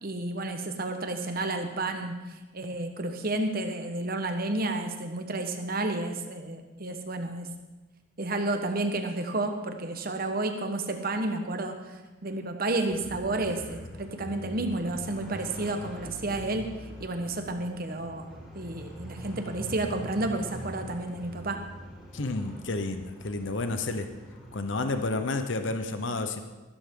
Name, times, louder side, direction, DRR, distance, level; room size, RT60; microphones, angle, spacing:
voice 1, 0.0-2.2 2.5-7.5 8.2-11.8 12.2-16.7 17.0-18.3 18.5-21.6, right 2 dB, 45° right, 6 dB, 1.1 m, -31 dB
sound 1, 12.9-25.1, equal, ahead, 3.9 m, -44 dB
voice 2, 22.1-24.1 24.5-26.4, left 2 dB, 60° left, 8 dB, 0.8 m, -30 dB
14.0 x 12.5 x 3.8 m, 1.2 s
head